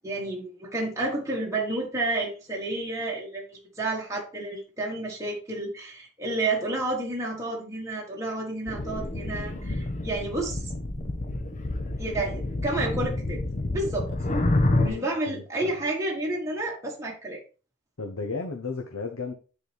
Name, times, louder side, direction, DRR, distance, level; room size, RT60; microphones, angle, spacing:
voice 1, 0.0-10.6 12.0-13.4 13.7-14.1 14.8-17.4, right 2 dB, 15° right, -2 dB, 1.4 m, -30 dB
sound 1, 8.7-14.9, left 2 dB, 35° left, 0.9 m, -28 dB
voice 2, 14.7-15.7 18.0-19.3, left 4 dB, 85° left, 2 dB, 0.9 m, -34 dB
9.3 x 4.2 x 3.4 m, 0.35 s
head